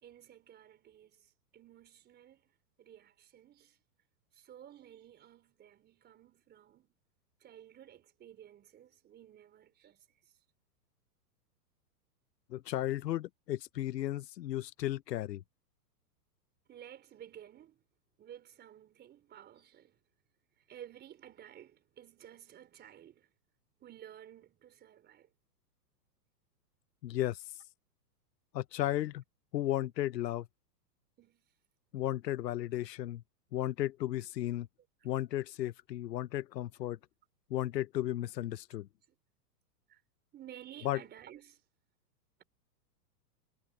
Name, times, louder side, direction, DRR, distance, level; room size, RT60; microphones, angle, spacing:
voice 1, 0.0-2.5 2.8-3.8 4.3-6.9 7.4-10.0 16.7-17.8 18.2-20.0 20.7-23.3 23.8-25.3 31.2-31.4 39.9-40.0 40.3-41.6, right 11 dB, 20° right, 4.0 m, -54 dB
voice 2, 12.5-15.4 27.0-27.4 28.5-29.2 29.5-30.5 31.9-33.2 33.5-34.7 35.0-37.0 37.5-38.9 40.8-41.0, left 14 dB, 80° left, 1.0 m, -34 dB
hypercardioid pair, 150°, 49 cm